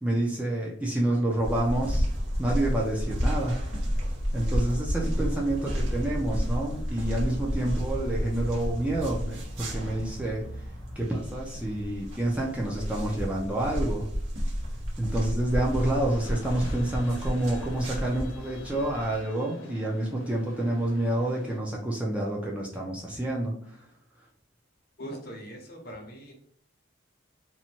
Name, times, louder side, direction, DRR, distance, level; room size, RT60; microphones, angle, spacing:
voice 1, 0.0-2.1 2.4-3.8 4.3-10.7 11.0-14.1 15.0-23.9, right 1 dB, 5° right, -3 dB, 0.3 m, -28 dB
sound 1, 1.4-19.2, equal, 85° right, 0.9 m, -31 dB
sound 2, 15.5-21.6, left 3 dB, 90° left, 0.4 m, -47 dB
voice 2, 25.0-26.3, equal, 50° left, 1 dB, 0.7 m, -41 dB
2.7 x 2.1 x 2.8 m, 0.62 s
head